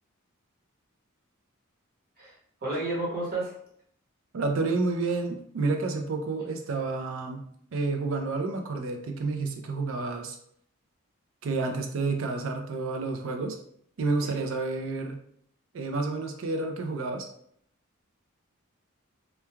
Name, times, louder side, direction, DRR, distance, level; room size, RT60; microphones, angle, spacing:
voice 1, 2.6-3.5 14.2-14.4, right 2 dB, 45° right, -6 dB, 1.0 m, -31 dB
voice 2, 4.3-7.4 7.7-10.4 11.4-13.6 14.0-15.2 15.7-17.3, right 3 dB, 65° right, 4 dB, 0.4 m, -30 dB
3.1 x 2.3 x 2.2 m, 0.67 s
head